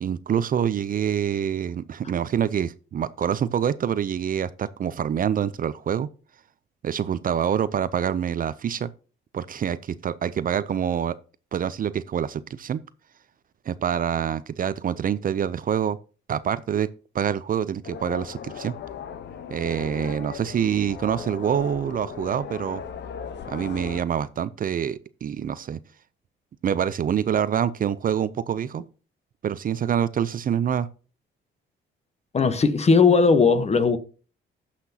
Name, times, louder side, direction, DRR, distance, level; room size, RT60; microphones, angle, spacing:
voice 1, 0.0-6.1 6.8-8.9 9.3-11.1 11.5-12.8 13.7-16.0 16.3-16.9 17.1-18.7 19.5-22.8 23.5-25.8 26.6-28.8 29.4-30.9, right 8 dB, 45° right, 0.5 m, -26 dB
sound 1, 17.8-24.0, left 7 dB, 65° left, 0.9 m, -37 dB
voice 2, 32.3-34.0, left 4 dB, 35° left, 1.0 m, -18 dB
14.5 x 5.8 x 2.8 m
cardioid pair, 90°, 20 cm